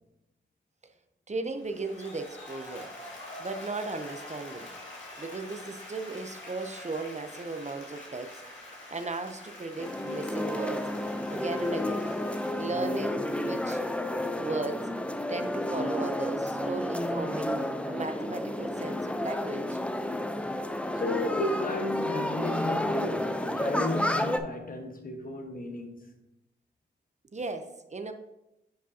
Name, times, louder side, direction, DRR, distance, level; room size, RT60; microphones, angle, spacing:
voice 1, 1.3-2.9 3.4-4.7 5.2-8.4 8.9-10.9 11.3-12.1 12.6-13.8 14.4-14.9 15.3-19.8 27.3-28.1, right 3 dB, 40° right, 0.7 m, -36 dB
Applause, 1.6-14.8, left 1 dB, 90° left, 2.0 m, -46 dB
sound 1, 9.8-24.4, left 1 dB, 5° left, 0.6 m, -31 dB
voice 2, 20.9-26.1, left 2 dB, 45° left, 1.2 m, -33 dB
10.0 x 5.0 x 2.8 m
cardioid pair, 50°, 19 cm